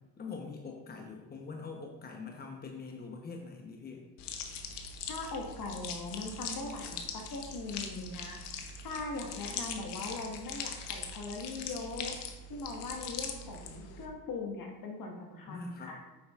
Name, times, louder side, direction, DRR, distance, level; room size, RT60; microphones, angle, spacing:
voice 1, 0.2-4.0 15.5-16.0, left 4 dB, 25° left, 1 dB, 1.0 m, -43 dB
sound 1, 4.2-14.1, left 5 dB, 75° left, 1.0 m, -41 dB
voice 2, 5.1-12.2 12.5-16.0, left 3 dB, 55° left, 1 dB, 1.6 m, -40 dB
8.6 x 6.9 x 2.5 m, 1.1 s
supercardioid pair, 85°, 41 cm